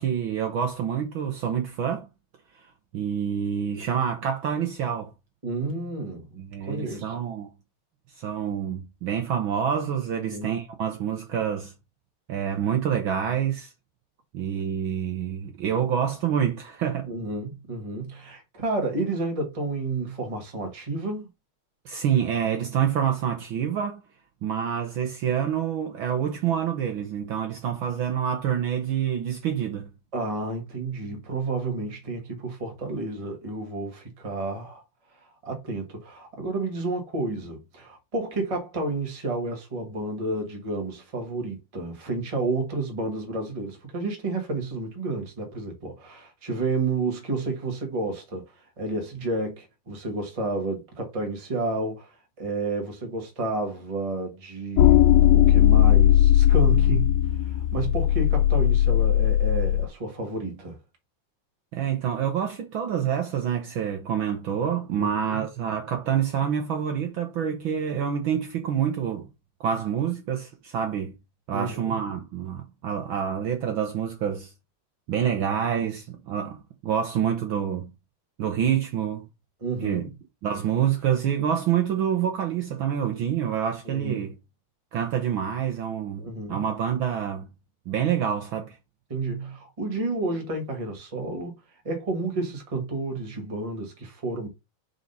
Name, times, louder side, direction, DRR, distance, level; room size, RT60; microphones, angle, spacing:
voice 1, 0.0-2.1 2.9-5.1 6.4-7.5 8.1-11.7 12.3-13.7 14.3-17.1 21.8-24.0 24.4-29.9 61.7-69.3 69.6-71.1 71.5-74.5 75.1-77.9 78.4-79.2 79.8-80.1 80.4-84.3 84.9-87.5 87.9-88.8, right 8 dB, 80° right, 1.1 m, -27 dB
voice 2, 5.4-6.3 6.6-7.1 10.1-10.5 17.1-21.3 30.1-34.8 35.4-57.1 57.4-60.8 65.0-65.4 71.5-72.0 79.6-80.1 83.8-84.3 86.2-86.6 89.1-91.6 91.8-94.5, right 2 dB, 35° right, 0.5 m, -31 dB
sound 1, 54.8-59.9, left 12 dB, 80° left, 1.8 m, -18 dB
4.8 x 4.0 x 5.4 m
omnidirectional pair, 3.3 m